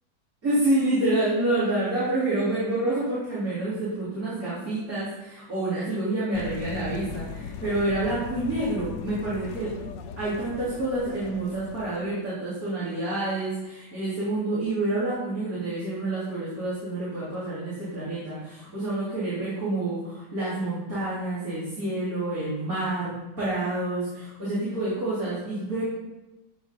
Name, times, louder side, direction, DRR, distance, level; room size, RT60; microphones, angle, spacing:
voice 1, 0.4-9.7 10.2-25.8, right 2 dB, 50° right, -11 dB, 4.6 m, -28 dB
sound 1, 6.3-12.0, left 7 dB, 80° left, 1.4 m, -39 dB
16.5 x 6.1 x 5.6 m, 1.0 s
omnidirectional pair, 1.9 m